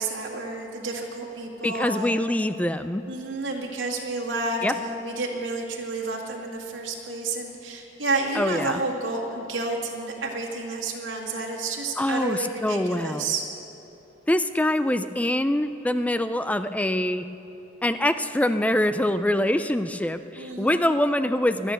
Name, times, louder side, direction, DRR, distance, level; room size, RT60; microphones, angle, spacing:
voice 1, 0.0-2.3 3.1-13.4 20.4-20.9, right 3 dB, 90° right, -2 dB, 2.0 m, -30 dB
voice 2, 1.6-3.0 4.6-4.7 8.4-8.8 12.0-13.3 14.3-17.2 17.8-21.7, left 1 dB, 5° left, 11 dB, 0.4 m, -24 dB
24.0 x 9.1 x 6.4 m, 3.0 s
head